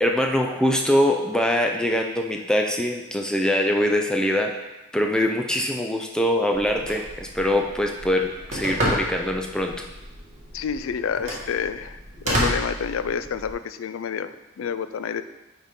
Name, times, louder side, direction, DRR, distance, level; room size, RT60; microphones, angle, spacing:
voice 1, 0.0-9.7, left 1 dB, 5° left, 2 dB, 0.4 m, -23 dB
Telephone, 6.5-13.5, equal, 35° right, 1.5 m, -31 dB
voice 2, 10.5-12.0 12.2-15.2, left 7 dB, 75° left, 13 dB, 0.3 m, -29 dB
9.4 x 3.8 x 3.6 m, 1.0 s
head